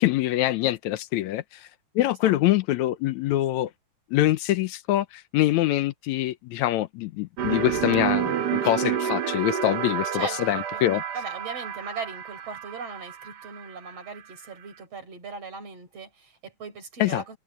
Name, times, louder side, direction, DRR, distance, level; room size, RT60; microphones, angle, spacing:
voice 1, 0.0-1.6 2.0-3.7 4.1-11.0 17.0-17.3, left 15 dB, 85° left, 2.0 m, -24 dB
sound 1, 7.4-14.4, right 9 dB, 75° right, 0.9 m, -29 dB
voice 2, 10.1-17.4, right 4 dB, 55° right, 5.7 m, -39 dB
omnidirectional pair, 3.3 m